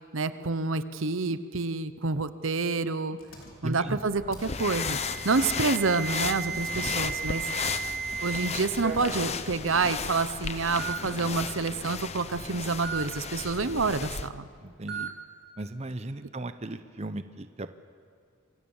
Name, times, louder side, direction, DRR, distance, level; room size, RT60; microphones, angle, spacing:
voice 1, 0.1-3.2 3.6-5.0 5.2-7.5 8.2-14.5, right 4 dB, 75° right, 12 dB, 0.9 m, -28 dB
Engine, 3.2-9.5, equal, 75° left, 4.8 m, -49 dB
voice 2, 3.6-4.0 6.7-7.0 14.6-15.1 15.6-17.7, right 2 dB, 30° right, 10 dB, 0.8 m, -36 dB
sound 1, 4.4-14.3, left 5 dB, 30° left, 0.8 m, -35 dB
Alarm, 4.5-8.5 8.8-9.2 10.1-10.2 10.8-11.0 12.8-13.0 14.9-15.1, right 6 dB, 55° right, 3.3 m, -35 dB
27.0 x 24.5 x 7.2 m, 2.2 s
head